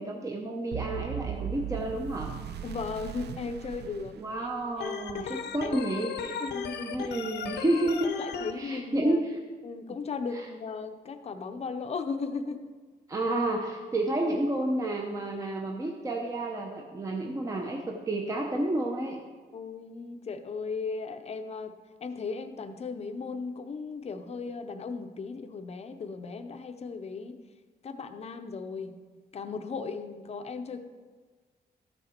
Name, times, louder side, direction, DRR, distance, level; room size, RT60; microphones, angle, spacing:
voice 1, 0.0-2.3 4.2-6.4 6.8-8.1 8.6-9.4 13.1-19.2, right 1 dB, 20° right, 1 dB, 0.7 m, -30 dB
sound 1, 0.7-4.8, right 9 dB, 75° right, 0.5 m, -38 dB
voice 2, 2.6-4.2 4.8-5.8 6.4-7.3 8.2-9.2 9.6-12.7 19.5-21.7 22.0-27.4 27.8-28.9 29.3-30.8, left 4 dB, 40° left, 7 dB, 0.6 m, -36 dB
Organ, 4.8-8.5, left 6 dB, 85° left, 0.8 m, -36 dB
13.0 x 6.5 x 4.4 m, 1.4 s
wide cardioid pair, 175°, 17 cm